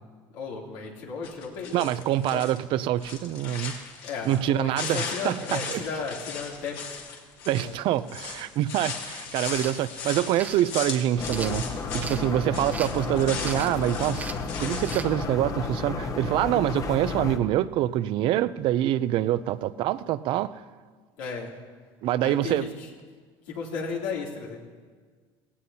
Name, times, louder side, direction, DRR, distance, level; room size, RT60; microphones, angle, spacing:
voice 1, 0.3-1.9 2.3-2.4 4.0-6.8 7.5-7.7 21.2-21.5 22.2-22.9 23.5-24.6, left 5 dB, 85° left, -3 dB, 3.0 m, -34 dB
sound 1, 1.2-2.6 3.0-4.5 4.8-12.2 12.5-15.0, left 6 dB, 70° left, 2.4 m, -37 dB
voice 2, 1.7-3.8 4.3-5.8 7.5-11.6 11.9-14.3 14.6-20.6 22.0-22.7, right 13 dB, 60° right, 15 dB, 0.5 m, -25 dB
sound 2, 9.4-9.8 10.4-10.6 11.2-12.2 12.7-13.0 13.4-13.8 14.1-14.5 14.8-15.1, right 4 dB, 15° right, 0.8 m, -38 dB
sound 3, 11.2-17.4, left 4 dB, 35° left, 0.9 m, -32 dB
17.5 x 17.0 x 2.8 m, 1.5 s
cardioid pair, 120°, 10 cm